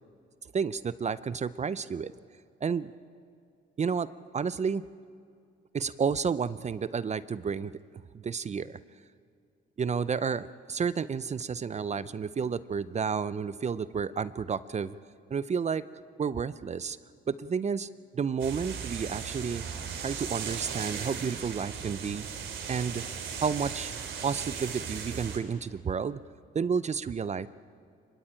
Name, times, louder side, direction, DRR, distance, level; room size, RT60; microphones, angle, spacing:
voice 1, 0.5-2.1 2.6-2.9 3.8-4.1 4.3-4.8 5.7-7.7 8.1-8.8 9.8-14.9 15.3-15.8 16.2-17.0 17.3-19.6 20.0-22.3 22.7-23.0 23.4-23.9 24.2-26.2 26.5-27.5, right 6 dB, 35° right, 16 dB, 0.6 m, -31 dB
sound 1, 18.4-25.4, right 7 dB, 75° right, 3.2 m, -37 dB
24.0 x 22.0 x 8.9 m, 2.4 s
cardioid pair, 90°, 20 cm